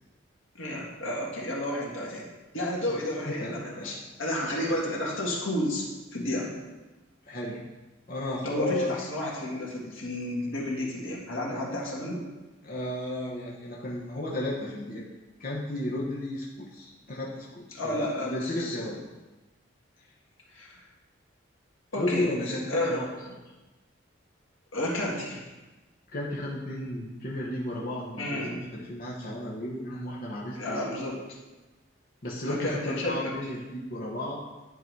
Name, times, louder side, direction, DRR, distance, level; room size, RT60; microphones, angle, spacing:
voice 1, 0.6-2.3 2.5-6.5 8.4-12.2 17.7-18.9 20.5-20.8 21.9-23.1 24.7-25.5 28.2-28.6 30.6-31.2 32.5-33.3, left 1 dB, 85° left, -3 dB, 1.8 m, -31 dB
voice 2, 2.9-3.9 7.3-7.6 8.1-8.9 12.6-15.1 15.4-19.0 21.9-23.1 26.1-30.8 32.2-34.4, left 1 dB, 45° left, -5 dB, 1.0 m, -33 dB
10.0 x 3.9 x 4.6 m, 1.1 s
head